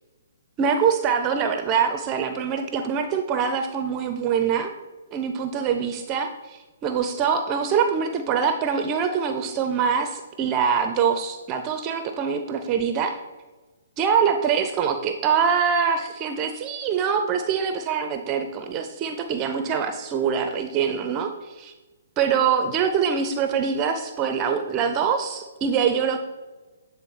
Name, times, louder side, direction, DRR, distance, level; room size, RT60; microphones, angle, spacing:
voice 1, 0.6-4.7 5.1-13.2 14.0-21.7 22.2-26.2, right 7 dB, 25° right, 7 dB, 0.5 m, -24 dB
8.7 x 3.5 x 4.5 m, 1.2 s
hypercardioid pair, 130°, 0 cm